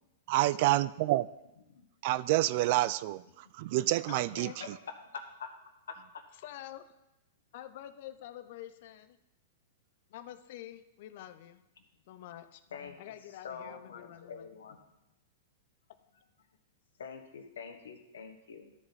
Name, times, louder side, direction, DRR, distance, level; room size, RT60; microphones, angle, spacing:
voice 1, 0.3-1.3 2.0-4.5, right 16 dB, 55° right, 18 dB, 0.3 m, -28 dB
voice 2, 3.4-3.8 4.3-5.5 5.9-6.2 11.8-11.9 12.1-12.2 12.7-14.8 17.0-18.7, left 6 dB, 85° left, 4 dB, 1.2 m, -46 dB
voice 3, 4.1-4.5 6.4-7.0 7.5-9.2 10.1-11.6 12.1-12.6 13.0-14.5, left 12 dB, 60° left, 10 dB, 0.5 m, -47 dB
12.5 x 4.8 x 4.1 m, 0.93 s
hypercardioid pair, 130°, 0 cm